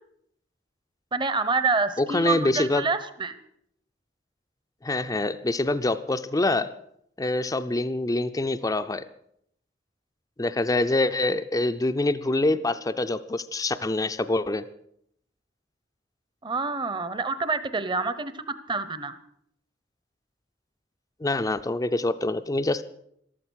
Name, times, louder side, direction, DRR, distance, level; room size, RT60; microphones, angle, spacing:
voice 1, 1.1-3.3 16.4-19.2, right 4 dB, 25° right, 12 dB, 0.9 m, -27 dB
voice 2, 2.0-2.9 4.8-6.7 7.2-9.0 10.4-14.6 21.2-22.8, left 2 dB, 20° left, 10 dB, 0.5 m, -25 dB
14.0 x 12.5 x 6.3 m, 0.70 s
head